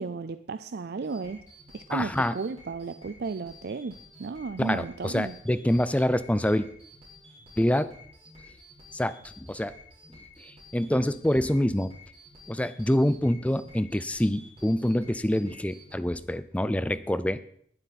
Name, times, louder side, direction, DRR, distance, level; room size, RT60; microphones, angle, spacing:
voice 1, 0.0-1.4 1.7-5.4, right 4 dB, 60° right, 11 dB, 0.5 m, -34 dB
sound 1, 1.0-15.9, left 1 dB, 35° right, 5.1 m, -52 dB
voice 2, 1.9-2.3 4.6-6.7 7.6-8.0 8.9-9.7 10.4-12.0 12.5-17.4, left 1 dB, 10° left, 15 dB, 0.5 m, -26 dB
20.0 x 7.8 x 4.2 m, 0.63 s
head